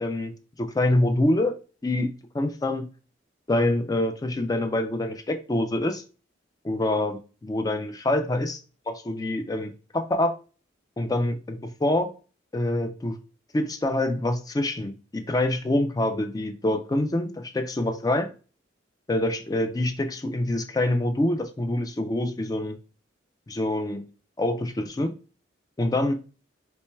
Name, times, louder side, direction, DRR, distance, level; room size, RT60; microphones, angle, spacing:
voice 1, 0.0-1.5 1.8-2.9 3.5-6.0 6.6-8.5 8.9-10.4 11.0-12.1 12.5-13.2 13.5-18.3 19.1-22.8 23.5-24.1 24.4-25.1 25.8-26.1, left 1 dB, 20° left, 0.3 m, -26 dB
4.3 x 3.1 x 2.2 m
head